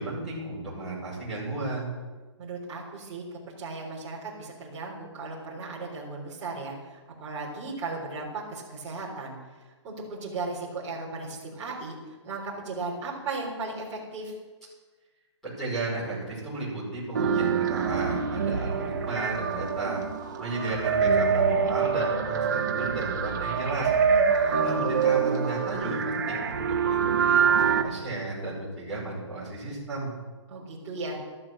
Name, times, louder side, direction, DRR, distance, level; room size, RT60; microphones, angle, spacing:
voice 1, 0.0-1.9 15.4-20.0 20.4-23.9 24.6-30.1, right 2 dB, ahead, -9 dB, 5.4 m, -33 dB
voice 2, 2.4-6.9 7.2-9.3 9.8-12.0 12.2-14.3 24.0-24.7 30.5-31.2, right 3 dB, 15° right, -6 dB, 3.8 m, -36 dB
sound 1, 17.1-27.8, right 6 dB, 40° right, 1.4 m, -25 dB
13.5 x 12.0 x 6.3 m, 1.3 s
hypercardioid pair, 180°, 15 cm